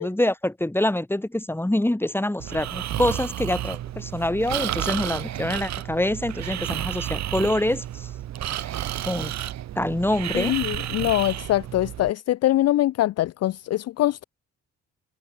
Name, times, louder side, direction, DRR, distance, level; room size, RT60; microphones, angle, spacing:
voice 1, 0.0-8.1 9.1-9.3 9.8-10.5, left 1 dB, 5° left, 5.6 m, -25 dB
Breathing, 2.4-12.1, right 12 dB, 60° right, 1.0 m, -31 dB
voice 2, 10.3-14.2, left 14 dB, 55° left, 0.5 m, -23 dB
cardioid pair, 90°, 30 cm